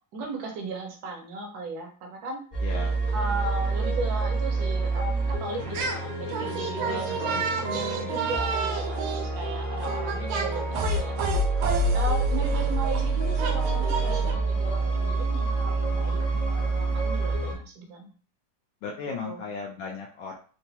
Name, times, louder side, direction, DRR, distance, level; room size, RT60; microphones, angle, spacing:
voice 1, 0.1-2.4 3.1-11.2 11.9-18.1 19.2-19.4, right 2 dB, 60° right, 2 dB, 1.0 m, -36 dB
sound 1, 2.5-17.6, right 3 dB, 55° left, 0.5 m, -28 dB
voice 2, 2.6-2.9 6.8-8.0 18.8-20.4, left 4 dB, 75° left, -1 dB, 1.3 m, -37 dB
sound 2, 5.6-6.0 6.3-14.3, right 2 dB, 90° right, 1.5 m, -30 dB
3.9 x 2.2 x 2.8 m, 0.41 s
omnidirectional pair, 2.2 m